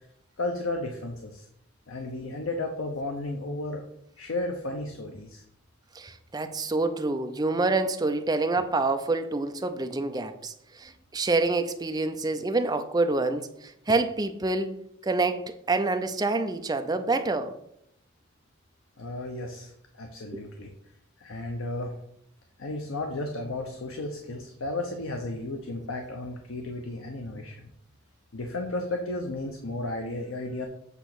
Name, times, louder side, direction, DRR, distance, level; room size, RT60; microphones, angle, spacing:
voice 1, 0.4-1.5 1.9-3.8 4.2-5.4 19.0-20.7 21.2-21.9 22.6-27.6 28.3-30.7, left 2 dB, 75° left, 3 dB, 0.8 m, -33 dB
voice 2, 5.9-14.7 15.0-17.5 20.3-20.5, right 3 dB, 20° right, 8 dB, 0.5 m, -27 dB
8.2 x 3.0 x 6.0 m, 0.74 s
head